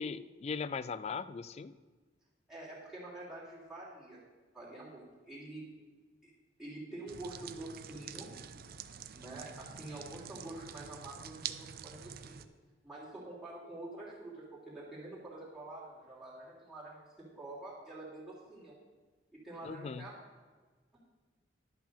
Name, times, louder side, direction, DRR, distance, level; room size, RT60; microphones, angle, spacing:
voice 1, 0.0-1.7 19.6-20.1, left 5 dB, 35° left, 16 dB, 0.3 m, -39 dB
voice 2, 2.5-4.2 4.5-5.6 6.2-6.3 6.6-8.3 9.1-12.4 12.8-17.0 17.3-18.7 19.3-20.1, right 2 dB, ahead, -8 dB, 3.0 m, -47 dB
sound 1, 7.1-12.5, right 8 dB, 55° right, 0.5 m, -46 dB
11.0 x 6.0 x 6.8 m, 1.4 s
head